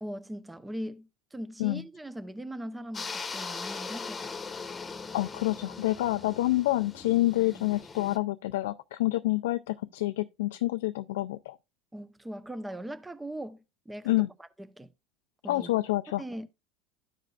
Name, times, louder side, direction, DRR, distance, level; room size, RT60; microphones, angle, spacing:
voice 1, 0.0-4.3 11.9-14.1 14.6-14.9 15.4-15.7 16.2-16.5, right 1 dB, 10° right, 0.6 m, -40 dB
sound 1, 2.9-8.2, left 4 dB, 20° left, 1.1 m, -40 dB
voice 2, 5.1-11.6 14.0-14.3 15.5-16.2, left 17 dB, 85° left, 0.3 m, -28 dB
13.0 x 5.0 x 2.3 m
supercardioid pair, 100°, 0 cm